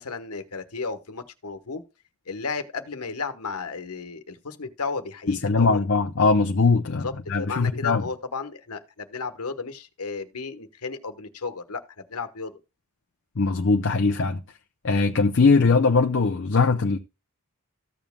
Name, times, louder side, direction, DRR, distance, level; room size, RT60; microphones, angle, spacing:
voice 1, 0.0-1.8 2.3-5.8 7.0-7.1 7.4-11.8 12.1-12.5, left 4 dB, 90° left, 1.2 m, -33 dB
voice 2, 5.3-8.0 13.4-14.4 14.8-17.0, left 4 dB, 55° left, 0.6 m, -21 dB
14.5 x 7.2 x 2.2 m
head